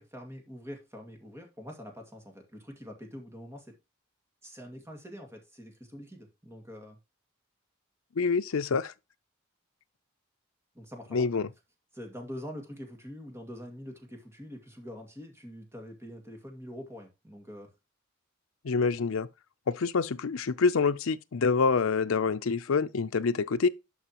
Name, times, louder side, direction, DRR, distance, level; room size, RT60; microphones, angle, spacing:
voice 1, 0.0-3.7 4.4-7.0 10.7-11.3 11.9-17.7, equal, 15° right, 2.1 m, -44 dB
voice 2, 8.2-8.9 11.1-11.5 18.6-19.3 19.7-23.7, left 4 dB, 80° left, 0.5 m, -26 dB
11.5 x 4.9 x 2.9 m
head